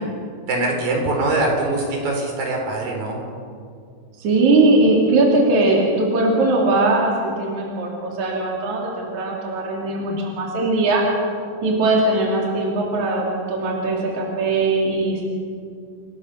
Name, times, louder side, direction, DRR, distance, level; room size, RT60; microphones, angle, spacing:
voice 1, 0.5-3.2, right 2 dB, 75° right, 1 dB, 5.8 m, -22 dB
voice 2, 4.2-11.0 11.6-15.2, right 2 dB, 60° right, -2 dB, 4.2 m, -20 dB
29.0 x 18.0 x 6.7 m, 2.3 s
omnidirectional pair, 4.0 m